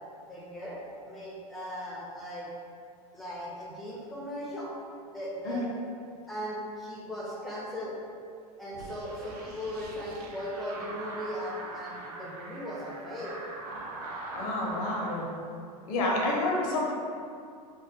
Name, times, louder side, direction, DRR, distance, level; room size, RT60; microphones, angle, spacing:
voice 1, 0.3-2.5 3.1-4.8 5.1-5.7 6.3-8.0 8.6-13.4, equal, ahead, -6 dB, 0.4 m, -38 dB
sound 1, 8.7-15.2, right 2 dB, 75° right, 0.5 m, -41 dB
voice 2, 14.3-15.3 15.9-16.9, left 2 dB, 65° left, -2 dB, 0.5 m, -29 dB
2.2 x 2.1 x 2.6 m, 2.3 s
hypercardioid pair, 105°, 20 cm